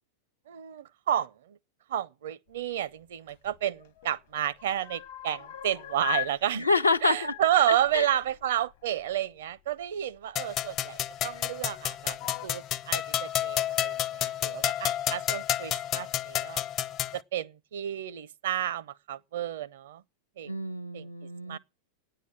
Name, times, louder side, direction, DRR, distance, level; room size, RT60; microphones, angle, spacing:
voice 1, 0.5-1.6 1.9-6.7 7.0-16.6 17.1-20.0 20.4-20.5 20.9-21.1 21.4-21.6, right 11 dB, 60° right, 0.6 m, -31 dB
sound 1, 3.3-4.2 4.5-6.3 6.6-9.1 10.2-10.3 11.2-11.8 12.1-12.5, left 16 dB, 55° left, 0.9 m, -40 dB
voice 2, 6.5-7.3 7.7-8.1 20.5-21.6, left 3 dB, 85° left, 0.6 m, -27 dB
sound 2, 10.4-17.2, left 11 dB, 35° left, 0.5 m, -30 dB
9.6 x 7.7 x 9.0 m
figure-of-eight pair, 90°, 0 cm